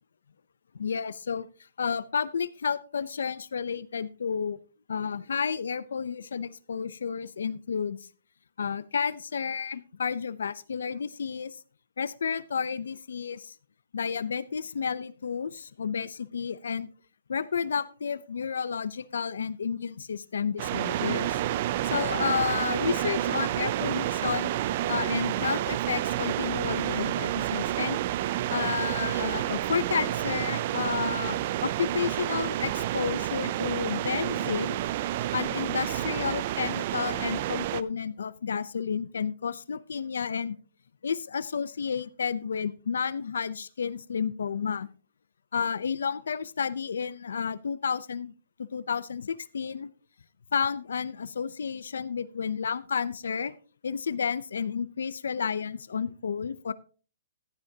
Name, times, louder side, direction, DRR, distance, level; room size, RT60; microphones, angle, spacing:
voice 1, 0.7-1.5 1.8-4.6 4.9-8.0 8.6-11.6 12.0-13.5 13.9-16.9 17.3-21.4 21.8-24.5 24.9-28.0 28.5-34.8 35.3-40.6 41.0-44.9 45.5-48.3 48.7-49.9 50.5-53.5 53.8-56.7, left 6 dB, 85° left, 17 dB, 0.6 m, -31 dB
sound 1, 20.6-37.8, right 13 dB, 40° right, 0.4 m, -29 dB
15.0 x 9.1 x 2.8 m, 0.38 s
hypercardioid pair, 160°, 0 cm